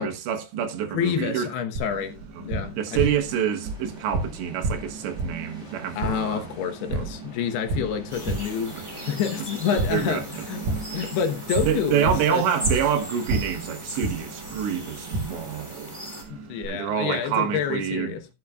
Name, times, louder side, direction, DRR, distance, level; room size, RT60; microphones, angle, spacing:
voice 1, 0.0-1.5 2.4-2.5 2.8-6.5 6.9-7.1 9.7-10.2 11.7-16.3 16.7-18.1, right 9 dB, 80° right, 3.7 m, -27 dB
voice 2, 0.9-3.0 6.0-8.8 9.1-10.6 10.9-12.4 16.3-18.3, left 7 dB, 75° left, 3.0 m, -28 dB
Tap, 1.8-16.7, right 2 dB, 50° right, 4.7 m, -33 dB
sound 1, 2.8-15.8, left 2 dB, 15° left, 3.0 m, -49 dB
sound 2, 8.1-16.2, right 1 dB, 10° right, 2.0 m, -38 dB
15.5 x 8.4 x 2.3 m
omnidirectional pair, 5.0 m